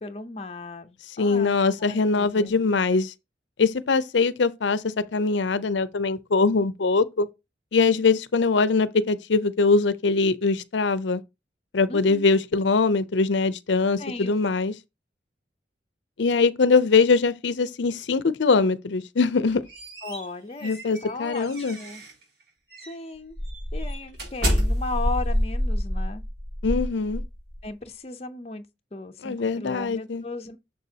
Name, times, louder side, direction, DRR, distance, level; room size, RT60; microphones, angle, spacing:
voice 1, 0.0-2.5 11.9-12.3 14.0-14.3 20.0-22.0 22.8-23.4 23.7-26.2 27.6-28.7 28.9-30.6, left 3 dB, 35° left, 0.6 m, -36 dB
voice 2, 1.2-3.1 3.6-7.3 7.7-11.2 11.7-14.7 16.2-19.6 20.6-21.8 26.6-27.2 29.2-30.2, left 4 dB, 80° left, 0.5 m, -22 dB
sound 1, 19.3-22.2 22.7-22.9 23.4-27.6, equal, 70° right, 5.1 m, -28 dB
6.7 x 6.7 x 2.8 m
head